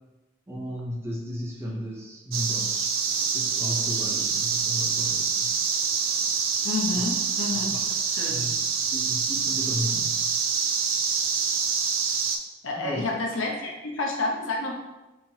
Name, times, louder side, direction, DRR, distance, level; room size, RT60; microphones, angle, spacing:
voice 1, 0.5-2.8 3.3-5.6 6.9-7.0 7.6-7.8 8.3-10.2 12.7-13.1, equal, 10° right, -3 dB, 0.5 m, -34 dB
sound 1, 2.3-12.4, right 6 dB, 80° right, 0.4 m, -26 dB
voice 2, 6.6-7.8 8.0-8.4 12.6-14.7, left 3 dB, 70° left, -1 dB, 0.8 m, -29 dB
4.4 x 2.9 x 2.7 m, 1.1 s
head